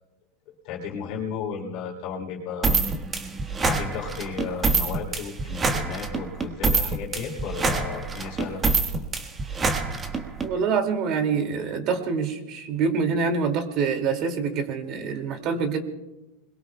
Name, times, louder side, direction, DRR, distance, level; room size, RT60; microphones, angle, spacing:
voice 1, 0.6-2.8 3.6-8.6, left 6 dB, 55° left, -2 dB, 3.5 m, -34 dB
sound 1, 2.6-10.5, right 4 dB, 20° right, 1.5 m, -25 dB
voice 2, 10.4-15.8, right 5 dB, 45° right, 5 dB, 2.4 m, -26 dB
28.5 x 21.5 x 2.3 m, 1.0 s
supercardioid pair, 130°, 0 cm